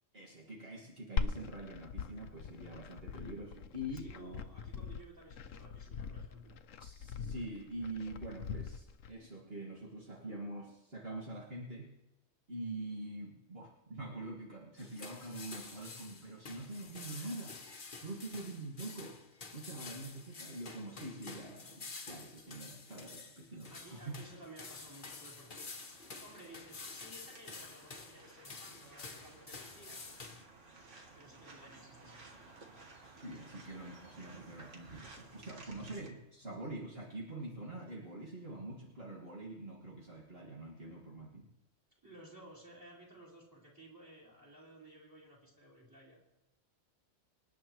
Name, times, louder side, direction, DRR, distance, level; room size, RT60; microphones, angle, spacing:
voice 1, 0.1-4.4 6.8-11.9 12.5-17.6 18.0-19.2 19.5-24.2 33.1-41.5, right 1 dB, 50° right, -4 dB, 2.2 m, -45 dB
Glass, 1.2-9.1, left 5 dB, 85° left, 1.1 m, -41 dB
voice 2, 4.0-6.6 18.0-18.3 23.7-25.7 26.2-30.1 31.1-33.1 35.6-35.8 42.0-46.2, right 1 dB, 15° right, -4 dB, 4.3 m, -56 dB
sound 1, 14.8-30.4, left 4 dB, 45° left, 1.2 m, -49 dB
sound 2, 23.8-36.1, right 3 dB, 70° right, 2.0 m, -56 dB
27.0 x 9.5 x 3.1 m, 0.97 s
omnidirectional pair, 1.3 m